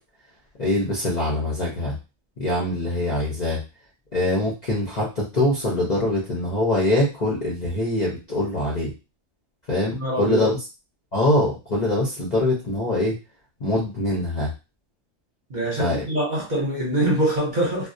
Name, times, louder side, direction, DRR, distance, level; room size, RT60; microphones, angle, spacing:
voice 1, 0.6-2.0 2.4-3.6 4.1-8.9 9.7-10.6 11.1-13.2 13.6-14.5 15.8-16.0, left 1 dB, 45° left, -4 dB, 0.5 m, -23 dB
voice 2, 9.9-10.5 15.5-17.9, right 1 dB, 45° right, -3 dB, 0.8 m, -24 dB
2.3 x 2.0 x 2.6 m, 0.29 s
omnidirectional pair, 1.4 m